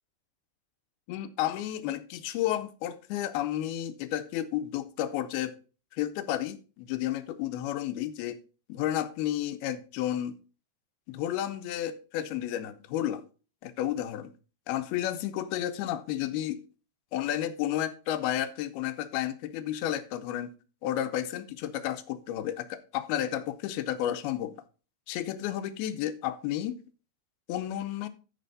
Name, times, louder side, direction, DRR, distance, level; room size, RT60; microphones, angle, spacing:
voice 1, 1.1-5.5 5.9-8.4 8.7-10.4 11.1-13.2 13.6-14.3 14.7-16.6 17.1-20.5 20.8-24.5 25.1-26.8 27.5-28.1, left 12 dB, 80° left, 2.5 m, -32 dB
12.5 x 5.3 x 4.0 m
omnidirectional pair, 4.8 m